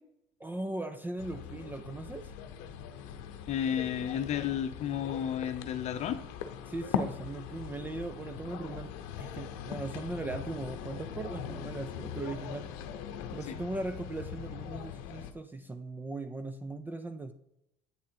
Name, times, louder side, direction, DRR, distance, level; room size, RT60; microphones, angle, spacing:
voice 1, 0.4-2.3 6.7-8.9 9.2-12.7 13.3-17.3, right 2 dB, 10° right, 9 dB, 0.4 m, -38 dB
sound 1, 1.2-15.3, left 8 dB, 90° left, 0.7 m, -41 dB
voice 2, 3.5-6.2 13.5-13.6, left 9 dB, 40° left, 9 dB, 0.7 m, -32 dB
8.4 x 3.7 x 4.3 m, 0.81 s
cardioid pair, 130°, 17 cm